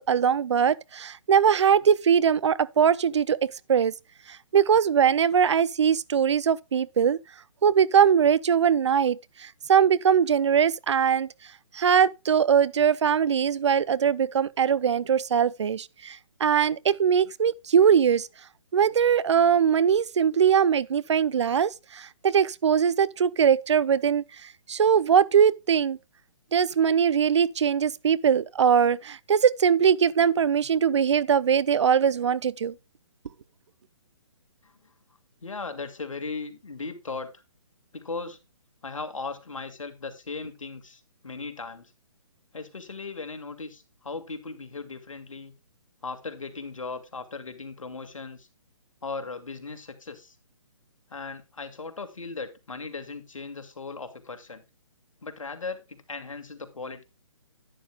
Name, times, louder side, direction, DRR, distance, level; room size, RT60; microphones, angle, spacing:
voice 1, 0.0-3.9 4.5-7.2 7.6-11.3 11.7-18.3 18.7-24.2 24.7-26.0 26.5-32.7, right 7 dB, 60° right, 0.5 m, -21 dB
voice 2, 35.4-37.3 37.9-38.4 38.8-41.9 42.5-45.5 46.0-48.5 49.0-50.4 51.1-54.7 55.2-57.0, left 4 dB, 75° left, 2.0 m, -37 dB
11.5 x 9.5 x 2.2 m
figure-of-eight pair, 140°, 17 cm